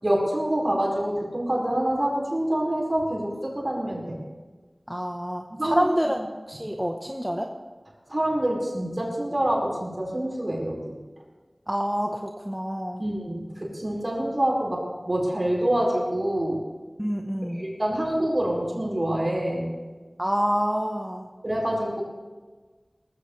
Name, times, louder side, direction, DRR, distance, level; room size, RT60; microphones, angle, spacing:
voice 1, 0.0-4.2 5.6-5.9 8.1-11.0 13.0-16.6 17.5-19.7 21.4-22.0, right 1 dB, 45° right, -3 dB, 5.1 m, -26 dB
voice 2, 4.9-7.5 11.7-13.0 17.0-17.7 20.2-21.3, equal, 10° right, 2 dB, 1.1 m, -27 dB
19.0 x 15.0 x 3.3 m, 1.4 s
wide cardioid pair, 45°, 0 cm